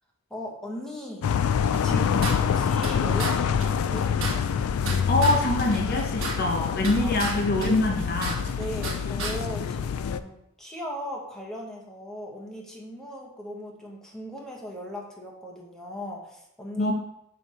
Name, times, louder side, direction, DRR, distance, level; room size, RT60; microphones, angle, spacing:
voice 1, 0.3-1.3 1.8-4.1 7.0-7.2 8.6-16.9, equal, 5° left, -2 dB, 1.1 m, -38 dB
sound 1, 1.2-10.2, left 7 dB, 85° left, 0.3 m, -26 dB
sound 2, 1.7-2.9 3.2-3.3 3.6-3.7 4.0-5.4 5.7-7.3 7.6-8.9 9.2-9.3, right 3 dB, 65° right, 1.3 m, -33 dB
voice 2, 5.1-8.4 16.8-16.9, left 1 dB, 45° left, 2 dB, 0.8 m, -24 dB
6.6 x 3.5 x 4.3 m, 0.79 s
head